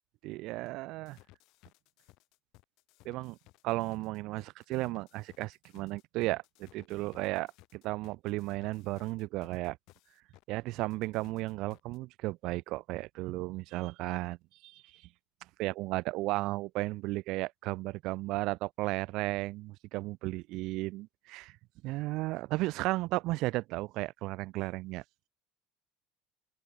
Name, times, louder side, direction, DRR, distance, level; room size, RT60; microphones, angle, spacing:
voice 1, 0.2-1.2 3.0-3.4 3.6-9.8 10.5-14.4 14.6-14.8 15.6-21.5 21.8-25.0, right 20 dB, 60° right, 0.9 m, -34 dB
sound 1, 1.0-10.4 10.8-12.0, left 21 dB, 60° left, 4.6 m, -60 dB
open air
hypercardioid pair, 65°, 0 cm